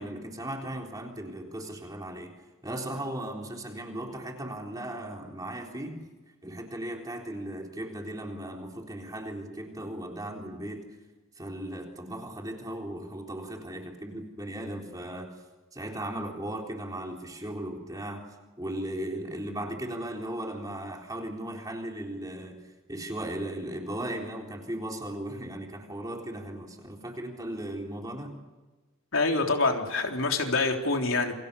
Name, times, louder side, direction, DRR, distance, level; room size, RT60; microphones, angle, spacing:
voice 1, 0.0-2.3 2.6-6.1 6.4-11.0 11.4-15.4 15.7-28.4, right 1 dB, 15° right, 1 dB, 3.8 m, -37 dB
voice 2, 29.1-31.3, left 3 dB, 75° left, 2 dB, 3.6 m, -26 dB
29.0 x 24.5 x 7.0 m, 1.2 s
head